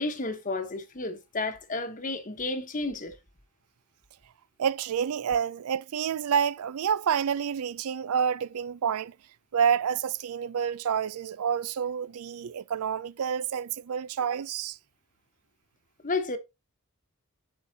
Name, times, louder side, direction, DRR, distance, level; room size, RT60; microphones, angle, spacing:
voice 1, 0.0-3.2 16.0-16.4, left 3 dB, 35° left, 1.1 m, -32 dB
voice 2, 4.6-9.1 9.5-14.8, right 7 dB, 75° right, 0.4 m, -28 dB
8.8 x 7.0 x 2.7 m
head